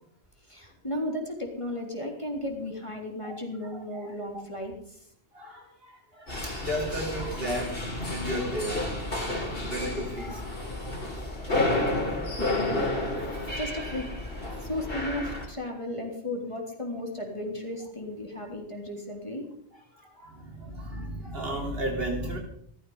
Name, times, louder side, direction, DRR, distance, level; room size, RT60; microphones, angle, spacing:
voice 1, 0.5-5.0 12.4-12.8 13.6-14.1 14.6-19.4, left 1 dB, 25° left, 0 dB, 3.6 m, -35 dB
voice 2, 3.2-4.1 5.3-9.0 9.5-10.9 11.8-12.3 14.5-14.7 15.6-15.8 18.4-18.5 19.7-22.4, equal, 60° right, 0 dB, 4.0 m, -35 dB
sound 1, 6.3-15.5, left 2 dB, 55° left, 3.9 m, -31 dB
16.5 x 14.0 x 5.7 m, 0.66 s
omnidirectional pair, 1.2 m